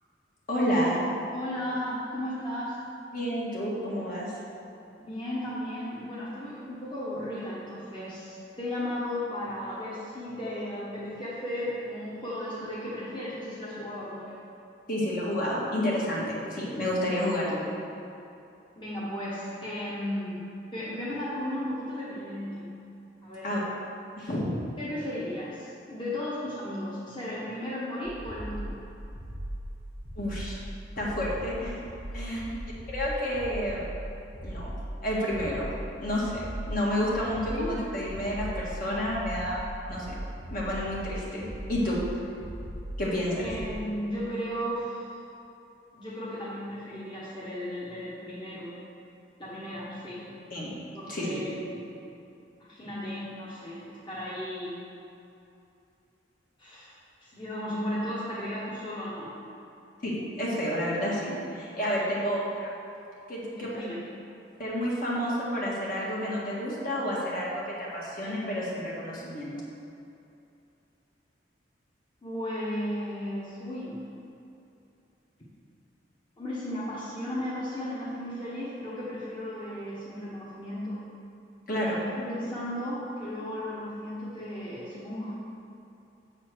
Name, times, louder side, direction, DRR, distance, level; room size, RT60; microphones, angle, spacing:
voice 1, 0.5-1.1 3.1-4.3 14.9-17.6 23.4-23.6 24.2-24.5 30.2-30.6 31.0-31.8 32.1-32.4 32.9-33.9 34.4-34.7 35.0-35.7 36.0-39.6 39.9-40.1 40.5-42.0 43.0-43.5 50.5-50.8 51.1-51.4 60.0-62.7 63.3-63.8 64.6-69.5 81.7-82.0, equal, 50° left, -6 dB, 1.7 m, -30 dB
voice 2, 1.3-2.7 5.0-14.4 18.8-20.4 20.7-22.7 23.2-23.7 24.8-28.8 32.1-32.6 37.5-37.8 43.4-45.2 45.9-48.8 49.4-50.3 50.9-51.8 52.6-54.8 56.6-56.9 57.2-59.3 62.0-62.1 63.5-64.0 72.2-74.0 76.4-81.0 81.7-85.3, left 1 dB, 25° left, -9 dB, 1.3 m, -35 dB
sound 1, 28.1-43.9, equal, 45° right, 0.9 m, -39 dB
7.5 x 4.3 x 6.3 m, 2.7 s
head